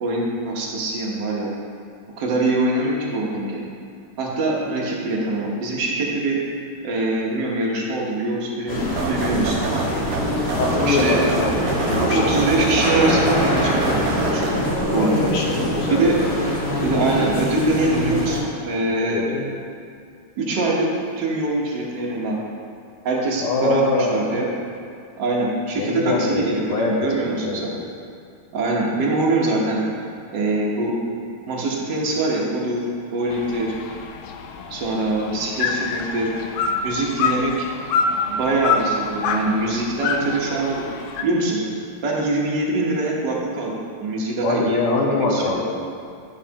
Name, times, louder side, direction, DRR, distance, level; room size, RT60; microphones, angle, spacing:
voice 1, 0.0-1.5 2.2-3.6 4.2-6.4 6.8-9.8 10.8-11.2 12.1-14.0 14.3-14.6 14.9-15.3 15.9-16.2 16.8-19.2 20.4-20.9 21.2-22.4 23.0-24.5 25.2-27.7 28.5-29.8 30.3-31.0 31.5-32.9 33.1-33.7 34.7-36.3 36.8-37.7 38.3-40.8 41.2-41.7 42.0-43.7 44.0-45.4, right 2 dB, 55° right, -3 dB, 1.2 m, -23 dB
sound 1, 8.7-18.4, equal, 35° left, 1.1 m, -24 dB
sound 2, 9.0-14.8, right 4 dB, 75° right, 1.3 m, -28 dB
voice 2, 10.6-11.5 11.9-12.2 14.9-16.4 19.0-19.5 23.4-24.2 25.7-27.9 44.4-45.7, left 3 dB, 65° left, -2 dB, 1.4 m, -23 dB
sound 3, 33.3-41.2, left 5 dB, 85° left, 1.3 m, -26 dB
10.5 x 6.9 x 2.9 m, 2.4 s
omnidirectional pair, 3.3 m